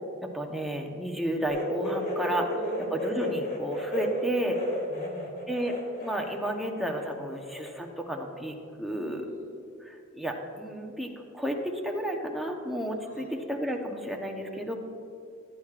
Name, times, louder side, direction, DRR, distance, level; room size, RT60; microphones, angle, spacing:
voice 1, 0.2-2.5 2.9-4.6 5.5-5.7 6.0-9.2 9.8-11.1 11.3-14.8, equal, ahead, 1 dB, 0.9 m, -32 dB
sound 1, 1.5-6.5 6.8-7.8 8.1-8.2 9.2-9.3, left 1 dB, 50° left, 2.1 m, -34 dB
voice 2, 2.3-2.8 4.9-5.3 9.0-9.6 13.0-13.3 14.4-14.8, left 1 dB, 75° left, -4 dB, 2.7 m, -49 dB
15.0 x 10.5 x 2.5 m, 2.6 s
head